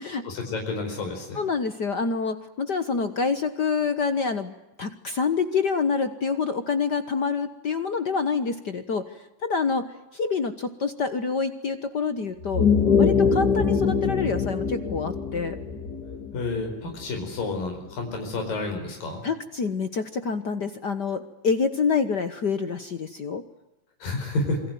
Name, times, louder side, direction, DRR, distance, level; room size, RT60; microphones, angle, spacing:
voice 1, 0.2-1.4 16.3-19.2 24.0-24.6, left 2 dB, 90° left, 3 dB, 6.6 m, -30 dB
voice 2, 1.3-4.5 4.8-9.0 9.4-12.7 13.0-15.6 19.2-23.4, left 5 dB, 65° left, 10 dB, 1.0 m, -27 dB
sound 1, 12.4-17.2, left 5 dB, 30° left, 2.7 m, -23 dB
28.0 x 22.0 x 9.3 m, 0.93 s
omnidirectional pair, 3.9 m